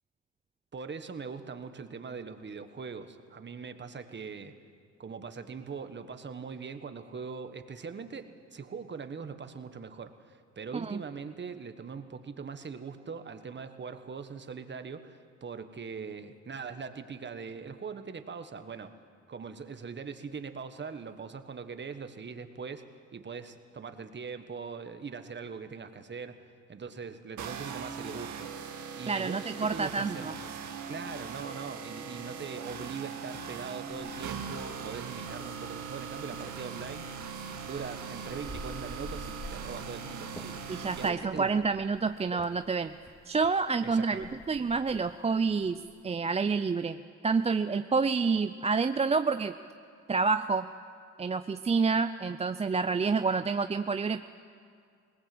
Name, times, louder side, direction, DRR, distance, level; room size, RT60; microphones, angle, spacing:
voice 1, 0.7-4.5 5.0-18.9 19.3-22.8 23.1-26.3 26.7-28.5 28.9-30.6 30.9-37.1 37.6-41.7 43.8-44.4, right 5 dB, 35° right, 9 dB, 1.5 m, -41 dB
sound 1, 27.4-41.1, right 6 dB, 75° right, 2.2 m, -40 dB
voice 2, 29.1-30.3 40.7-42.9 43.3-47.0 47.2-49.5 50.1-50.7 51.2-54.2, right 4 dB, 20° right, 10 dB, 0.5 m, -28 dB
sound 2, 33.9-46.0, left 1 dB, 10° left, 2.2 m, -50 dB
20.5 x 19.0 x 7.8 m, 2.2 s
cardioid pair, 90°, 30 cm